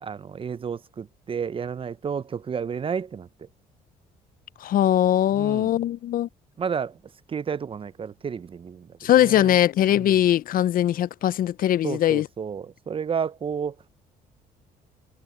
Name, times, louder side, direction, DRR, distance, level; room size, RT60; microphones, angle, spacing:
voice 1, 0.0-3.3 5.3-5.7 6.6-7.0 7.3-8.9 9.2-9.5 9.9-10.2 11.8-13.7, right 6 dB, 30° right, 0.5 m, -31 dB
voice 2, 4.6-6.3 9.0-12.3, left 11 dB, 55° left, 0.5 m, -21 dB
cardioid pair, 85°, 17 cm